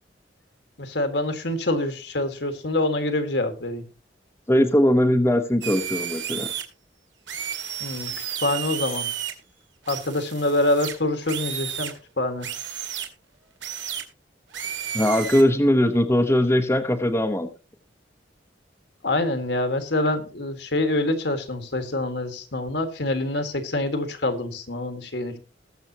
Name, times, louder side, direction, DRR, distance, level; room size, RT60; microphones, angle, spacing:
voice 1, 0.8-3.8 7.8-8.1 8.4-9.1 9.9-12.5 19.0-25.4, left 2 dB, 65° left, 8 dB, 1.7 m, -26 dB
voice 2, 4.5-6.5 14.9-17.5, equal, 15° left, 6 dB, 0.9 m, -20 dB
sound 1, 5.6-6.6 7.3-9.3 9.8-11.9 12.4-13.1 13.6-14.0 14.5-15.4, right 9 dB, 75° right, 2.2 m, -32 dB
20.5 x 7.2 x 2.9 m, 0.34 s
head